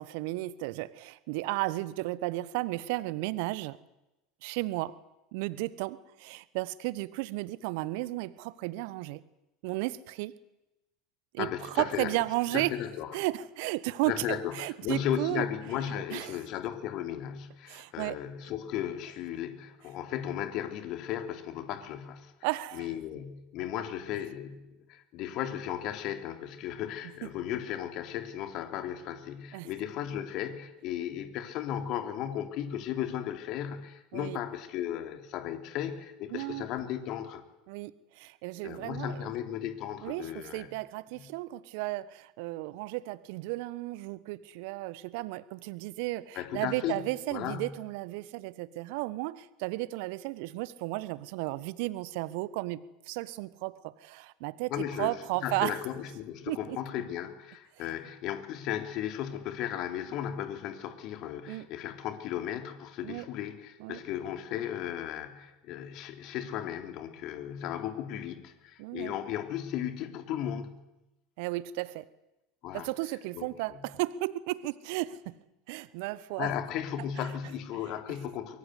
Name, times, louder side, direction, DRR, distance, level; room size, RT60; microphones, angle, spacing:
voice 1, 0.0-3.8 4.4-5.0 5.3-9.2 9.6-10.3 11.3-12.7 13.1-15.5 16.1-16.4 17.7-18.2 22.4-22.9 29.5-29.7 34.1-34.4 36.3-36.7 37.7-39.3 40.0-55.8 56.5-56.8 61.5-61.7 63.0-63.2 63.8-64.0 68.8-69.1 71.4-72.1 72.7-75.4 75.7-76.5 77.2-77.3, right 19 dB, 60° right, 18 dB, 1.2 m, -34 dB
voice 2, 11.4-12.1 12.5-13.1 14.0-14.6 14.8-22.3 22.7-37.4 38.6-40.7 41.2-41.3 46.3-47.0 47.3-47.7 54.7-55.1 55.4-70.8 72.6-72.9 73.3-73.8 76.4-78.6, left 10 dB, 50° left, 7 dB, 3.4 m, -35 dB
23.5 x 23.0 x 8.3 m, 0.96 s
figure-of-eight pair, 75°, 0 cm